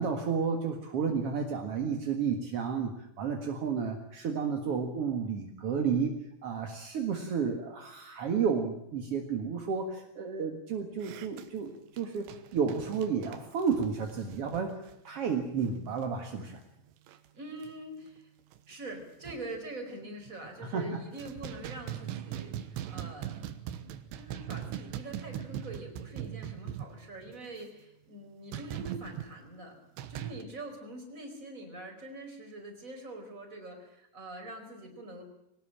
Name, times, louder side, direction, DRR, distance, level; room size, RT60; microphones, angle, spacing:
voice 1, 0.0-6.2 6.4-14.7 15.0-16.6 20.6-21.0, right 6 dB, 50° right, 3 dB, 1.9 m, -32 dB
sound 1, 11.0-16.1 16.3-16.5 16.9-17.3 17.6-17.7 18.2-18.3 18.5-19.6 20.2-20.7 21.0-27.4 28.5-29.3 30.0-30.4, right 11 dB, 90° right, 3.4 m, -41 dB
voice 2, 17.3-18.3 18.7-23.5 24.2-29.7 30.1-35.2, right 2 dB, 20° right, 3 dB, 4.8 m, -44 dB
22.0 x 19.0 x 8.8 m, 0.80 s
omnidirectional pair, 4.9 m